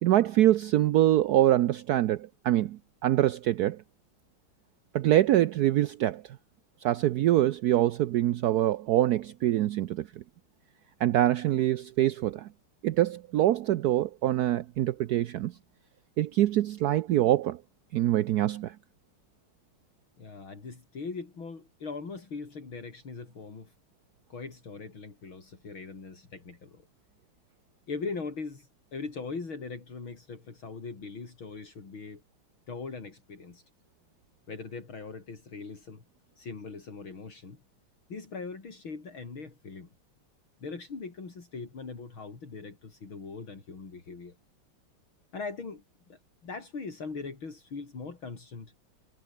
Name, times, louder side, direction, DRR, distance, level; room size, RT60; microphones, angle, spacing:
voice 1, 0.0-3.8 4.9-6.2 6.8-10.1 11.0-12.5 12.8-15.5 16.2-17.6 17.9-18.8, right 13 dB, 75° right, 0.8 m, -24 dB
voice 2, 20.2-23.7 24.3-26.9 27.9-32.2 32.7-33.6 34.5-36.0 36.4-37.6 38.1-39.9 40.6-44.3 45.3-48.7, left 4 dB, 70° left, 4.8 m, -40 dB
omnidirectional pair, 2.3 m